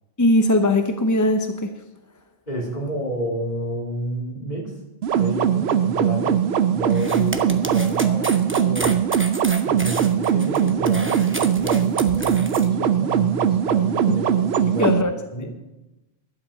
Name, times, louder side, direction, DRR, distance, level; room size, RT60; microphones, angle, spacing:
voice 1, 0.2-1.7 14.8-15.1 15.4-15.6, left 1 dB, 20° left, 6 dB, 0.7 m, -20 dB
voice 2, 2.5-4.7 5.1-8.9 9.6-15.0 15.3-15.6, equal, 45° left, -2 dB, 3.4 m, -30 dB
sound 1, 5.0-15.0, right 9 dB, 90° right, 0.9 m, -21 dB
sound 2, 6.9-12.7, right 1 dB, 15° right, 0.8 m, -32 dB
12.0 x 7.9 x 7.4 m, 0.99 s
omnidirectional pair, 1.0 m